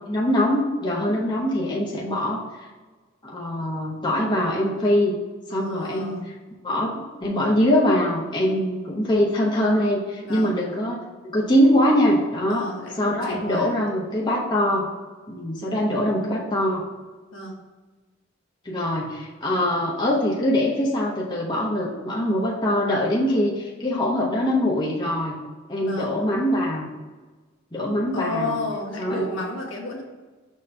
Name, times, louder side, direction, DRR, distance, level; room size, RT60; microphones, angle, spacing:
voice 1, 0.1-2.4 3.2-5.2 5.5-6.2 6.6-6.9 7.2-12.7 13.0-14.9 15.3-16.8 18.6-25.4 25.7-26.9 27.7-28.6 29.0-29.4, equal, 25° left, -4 dB, 1.0 m, -23 dB
voice 2, 5.5-6.3 10.2-10.6 12.5-13.8 17.3-17.6 25.8-26.2 28.1-30.0, left 2 dB, 70° left, -1 dB, 1.4 m, -32 dB
6.5 x 3.1 x 5.3 m, 1.3 s
head